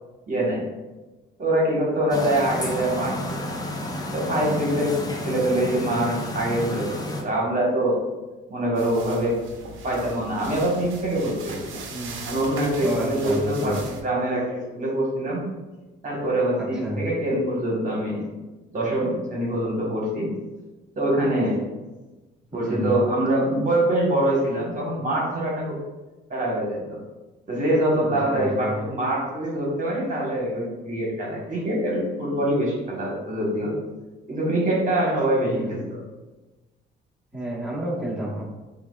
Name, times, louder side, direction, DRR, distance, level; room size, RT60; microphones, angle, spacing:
voice 1, 0.3-0.6 1.4-3.4 4.1-5.0 5.2-7.9 8.5-9.4 9.8-11.8 12.2-15.4 16.0-18.3 18.7-20.3 21.0-21.6 22.5-25.8 26.3-27.0 27.5-33.7 34.3-36.0, right 1 dB, 40° right, -4 dB, 1.1 m, -24 dB
sound 1, 2.1-7.2, left 1 dB, 20° left, 0.6 m, -31 dB
sound 2, 8.8-14.0, right 3 dB, 80° right, 0.6 m, -39 dB
voice 2, 12.8-13.8 16.8-17.0 22.5-22.9 28.0-28.7 35.5-35.7 37.3-38.4, right 1 dB, 5° right, -7 dB, 1.1 m, -30 dB
5.7 x 2.3 x 2.2 m, 1.2 s
cardioid pair, 90°, 20 cm